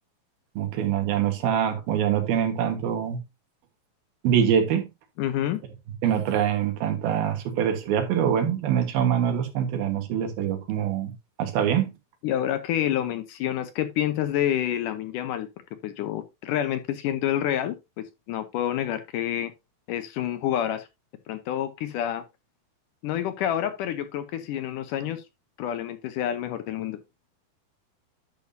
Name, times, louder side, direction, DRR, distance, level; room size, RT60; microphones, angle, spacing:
voice 1, 0.6-3.2 4.2-4.9 6.0-11.1 11.4-11.9, right 9 dB, 85° right, 3.3 m, -24 dB
voice 2, 5.2-5.6 12.2-15.5 15.8-19.5 19.9-20.9 21.3-22.2 23.0-25.2 25.6-27.0, left 11 dB, 75° left, 2.2 m, -28 dB
10.5 x 7.0 x 2.7 m
omnidirectional pair, 4.2 m